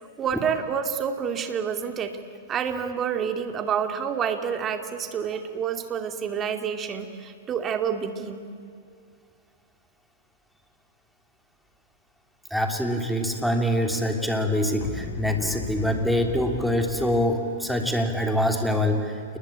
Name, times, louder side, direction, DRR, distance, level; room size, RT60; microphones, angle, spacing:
voice 1, 0.2-2.2 2.5-8.5, right 7 dB, 25° right, 7 dB, 2.5 m, -28 dB
voice 2, 12.5-19.2, equal, ahead, 4 dB, 3.2 m, -24 dB
sound 1, 13.0-18.4, left 11 dB, 45° left, 1.4 m, -40 dB
29.5 x 20.5 x 8.9 m, 2.3 s
hypercardioid pair, 120°, 0 cm